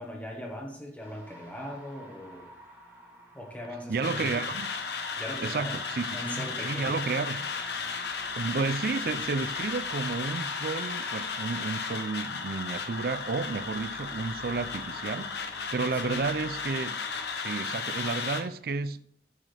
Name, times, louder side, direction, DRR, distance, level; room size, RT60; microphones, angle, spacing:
voice 1, 0.0-2.5 3.3-4.4 5.2-5.8 6.1-7.1 15.9-16.3, equal, 10° left, 1.3 m, -40 dB
sound 1, 1.0-17.3, equal, 10° right, 1.5 m, -52 dB
voice 2, 3.9-4.7 5.4-7.4 8.4-17.0 17.4-19.0, right 4 dB, 55° right, 0.4 m, -32 dB
sound 2, 4.0-18.4, left 5 dB, 70° left, 1.0 m, -35 dB
10.5 x 6.2 x 3.4 m
head